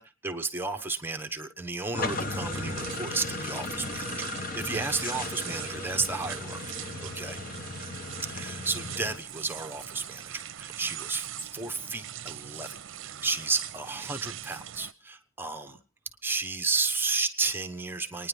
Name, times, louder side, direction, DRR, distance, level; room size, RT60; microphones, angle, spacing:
voice 1, 0.2-4.3 4.5-6.6 7.0-7.4 8.2-12.7 13.0-15.8 16.2-18.3, right 4 dB, 10° right, 6 dB, 1.0 m, -32 dB
sound 1, 1.9-9.2, left 2 dB, 40° left, 1.0 m, -36 dB
sound 2, 2.5-14.9, right 11 dB, 65° right, 0.6 m, -41 dB
29.5 x 10.0 x 3.4 m, 0.33 s
head